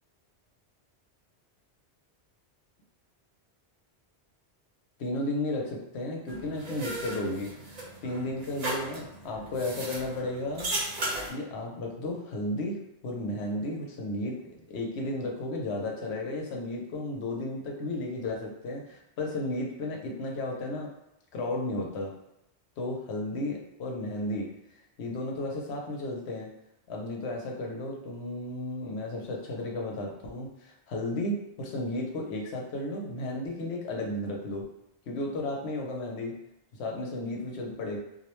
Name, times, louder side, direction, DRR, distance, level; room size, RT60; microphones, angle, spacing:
voice 1, 5.0-7.6 8.0-10.7 11.3-14.4 14.7-20.9 21.3-22.1 22.8-24.5 25.0-26.5 26.9-34.7 35.1-36.3 36.8-38.0, left 1 dB, 75° left, 0 dB, 0.9 m, -33 dB
sound 1, 6.3-11.3, right 1 dB, 45° right, 0.6 m, -36 dB
2.5 x 2.1 x 2.9 m, 0.85 s
omnidirectional pair, 1.1 m